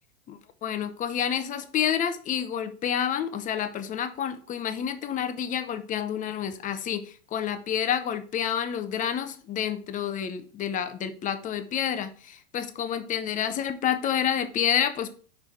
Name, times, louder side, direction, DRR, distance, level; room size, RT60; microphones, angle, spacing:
voice 1, 0.3-15.1, left 9 dB, 20° left, 10 dB, 0.6 m, -29 dB
5.3 x 4.4 x 4.6 m, 0.41 s
hypercardioid pair, 125°, 40 cm